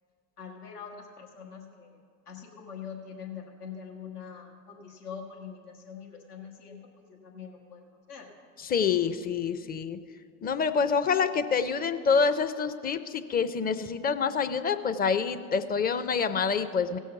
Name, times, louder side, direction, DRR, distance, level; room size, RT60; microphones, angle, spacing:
voice 1, 0.4-1.9 2.3-6.8 7.1-8.3, left 7 dB, 85° left, 1 dB, 1.6 m, -43 dB
voice 2, 8.6-10.0 10.4-17.0, left 6 dB, 20° left, 11 dB, 0.5 m, -27 dB
16.5 x 6.3 x 5.8 m, 2.2 s
hypercardioid pair, 85°, 45 cm